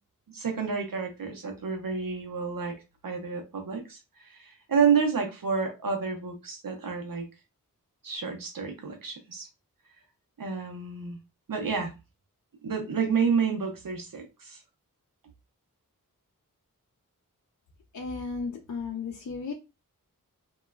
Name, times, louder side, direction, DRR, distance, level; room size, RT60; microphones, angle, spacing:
voice 1, 0.3-7.3 8.0-9.5 10.4-11.2 11.5-11.9 12.6-14.6, right 6 dB, 75° right, 3 dB, 0.7 m, -29 dB
voice 2, 17.9-19.5, left 4 dB, 60° left, 1 dB, 0.5 m, -34 dB
2.9 x 2.3 x 2.2 m, 0.26 s
wide cardioid pair, 65°, 34 cm